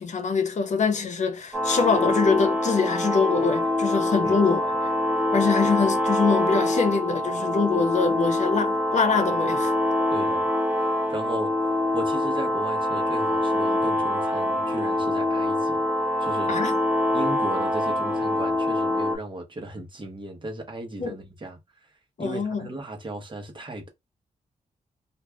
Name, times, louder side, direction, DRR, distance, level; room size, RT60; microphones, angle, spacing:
voice 1, 0.0-4.7 5.3-9.7 16.5-16.8 21.0-21.2 22.2-22.7, left 5 dB, 60° left, 0.6 m, -24 dB
sound 1, 1.5-19.2, left 1 dB, 15° right, 0.9 m, -24 dB
voice 2, 10.1-10.5 10.8-11.5 11.9-15.8 16.2-16.5 17.1-21.6 22.2-23.9, right 2 dB, 35° right, 1.0 m, -36 dB
2.5 x 2.3 x 3.3 m
cardioid pair, 70°, 14 cm